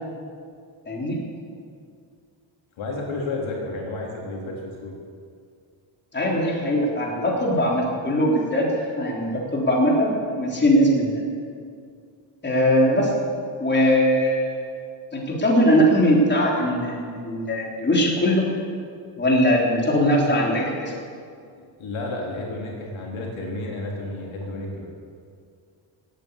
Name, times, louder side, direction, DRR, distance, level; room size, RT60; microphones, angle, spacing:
voice 1, 0.9-1.2 6.1-8.7 9.0-11.2 12.4-13.1 13.6-14.6 15.1-18.4 19.2-20.9, equal, 20° left, -2 dB, 3.7 m, -20 dB
voice 2, 2.8-5.0 21.6-24.9, left 2 dB, 70° left, -2 dB, 3.5 m, -31 dB
17.0 x 8.9 x 8.3 m, 2.3 s
cardioid pair, 100°, 49 cm